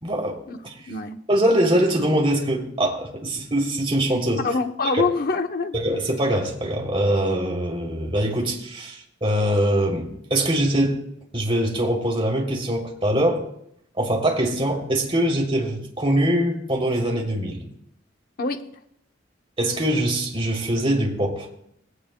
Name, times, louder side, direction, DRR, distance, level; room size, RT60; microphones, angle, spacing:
voice 1, 0.0-0.3 0.6-0.7 1.3-4.5 4.9-5.0 5.7-11.0 11.3-13.4 14.0-17.6 19.6-21.5, right 1 dB, 30° right, -1 dB, 3.2 m, -23 dB
voice 2, 0.9-1.2 4.4-5.8 18.4-18.6, left 3 dB, 50° left, 6 dB, 0.9 m, -25 dB
20.0 x 17.5 x 2.3 m, 0.74 s
head